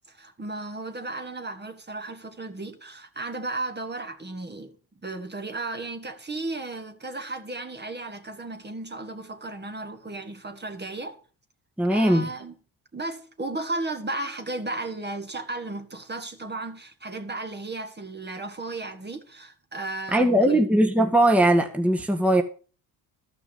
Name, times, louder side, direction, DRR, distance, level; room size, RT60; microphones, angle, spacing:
voice 1, 0.1-4.8 5.0-11.2 11.9-12.5 12.9-20.6, right 2 dB, 20° right, 1.7 m, -34 dB
voice 2, 11.8-12.3 20.1-22.4, right 1 dB, 5° right, 1.6 m, -20 dB
12.5 x 6.1 x 7.0 m
supercardioid pair, 80°, 45 cm